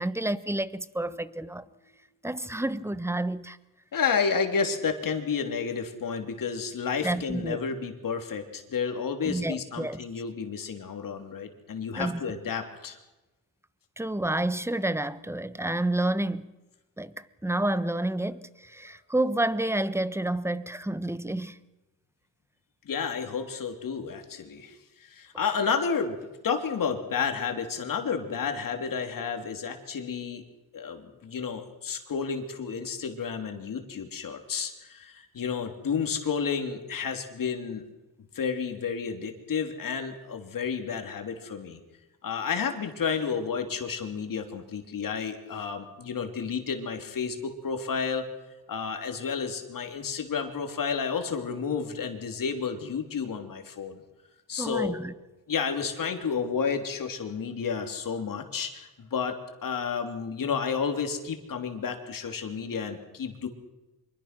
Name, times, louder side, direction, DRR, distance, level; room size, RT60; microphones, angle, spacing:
voice 1, 0.0-1.6 2.2-3.6 7.0-7.6 9.2-10.0 12.0-12.2 14.0-16.4 17.0-21.6 54.6-55.1, right 1 dB, 5° right, 1.1 m, -29 dB
voice 2, 3.9-13.0 22.8-26.2 26.4-30.4 30.7-37.8 38.3-41.8 42.2-48.3 48.7-54.0 54.5-55.0 55.5-59.3 59.6-63.5, left 6 dB, 65° left, 3.3 m, -31 dB
25.5 x 22.5 x 6.1 m
cardioid pair, 90°, 36 cm